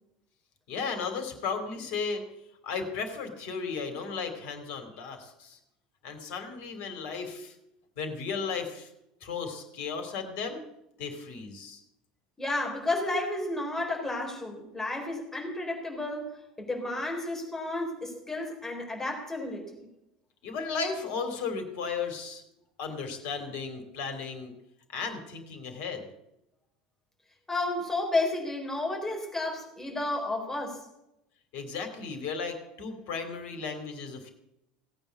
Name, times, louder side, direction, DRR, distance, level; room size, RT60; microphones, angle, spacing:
voice 1, 0.7-2.2 2.6-5.6 6.0-7.5 8.0-8.9 9.2-10.6 11.0-11.8 20.4-22.4 22.8-24.5 24.9-26.0 31.5-34.3, left 5 dB, 50° left, 6 dB, 3.1 m, -35 dB
voice 2, 12.4-19.9 27.5-30.9, left 2 dB, 10° left, 0 dB, 4.1 m, -32 dB
17.5 x 8.9 x 8.3 m, 0.86 s
figure-of-eight pair, 75°, 4 cm